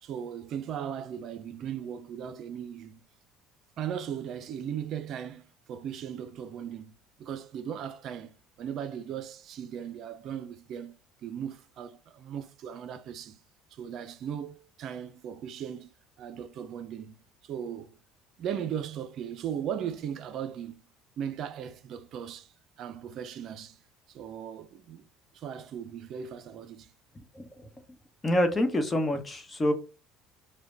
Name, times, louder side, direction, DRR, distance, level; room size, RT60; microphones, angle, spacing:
voice 1, 0.0-3.0 3.8-6.9 7.2-10.9 11.2-13.4 13.7-15.9 16.2-18.0 18.4-20.9 21.2-23.8 24.1-25.1 25.3-26.9, right 8 dB, 60° right, 0.5 m, -38 dB
voice 2, 27.3-27.7 28.2-29.7, left 1 dB, 20° left, 1.0 m, -27 dB
4.9 x 2.2 x 3.8 m
supercardioid pair, 90°, 0 cm